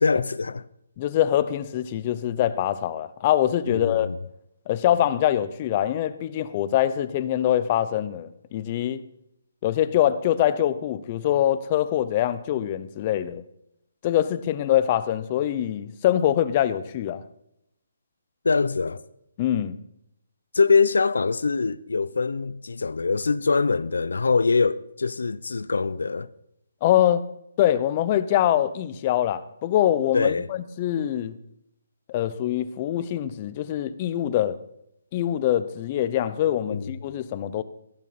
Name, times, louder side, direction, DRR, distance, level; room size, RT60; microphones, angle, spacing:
voice 1, 0.0-0.6 3.7-4.2 18.4-19.0 20.5-26.3 30.1-30.5 36.7-36.9, left 4 dB, 80° left, 0.6 m, -23 dB
voice 2, 1.0-4.1 4.7-9.0 9.6-13.4 14.0-17.2 19.4-19.8 26.8-27.2 27.6-31.4 32.1-34.6 35.1-37.6, left 11 dB, 30° left, 0.7 m, -24 dB
15.5 x 11.0 x 4.2 m
hypercardioid pair, 160°, 0 cm